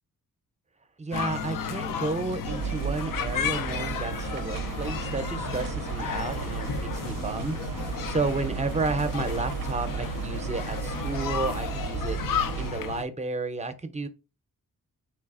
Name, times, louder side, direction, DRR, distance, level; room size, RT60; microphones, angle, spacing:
voice 1, 1.0-12.2 12.5-14.1, right 3 dB, 20° right, 0.6 m, -32 dB
sound 1, 1.1-13.0, left 7 dB, 70° left, 0.5 m, -33 dB
sound 2, 2.5-12.7, right 8 dB, 65° right, 0.5 m, -34 dB
3.9 x 3.3 x 2.4 m
wide cardioid pair, 100°, 35 cm